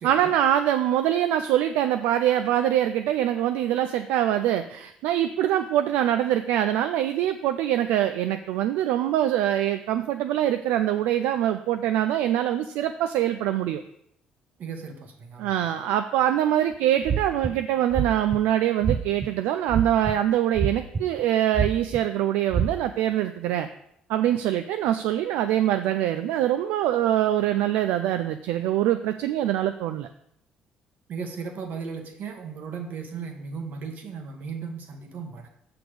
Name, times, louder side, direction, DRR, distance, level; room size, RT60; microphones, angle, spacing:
voice 1, 0.0-13.8 15.4-23.7 24.1-30.1, right 11 dB, 80° right, 8 dB, 0.4 m, -24 dB
voice 2, 14.6-15.5 31.1-35.5, right 5 dB, 60° right, 4 dB, 1.4 m, -36 dB
sound 1, 17.0-17.5 17.9-18.4 18.8-19.3 19.7-20.1 20.6-21.2 21.5-22.0 22.5-22.7, right 7 dB, 35° right, 0.6 m, -25 dB
6.7 x 6.0 x 4.9 m, 0.74 s
supercardioid pair, 65°, 3 cm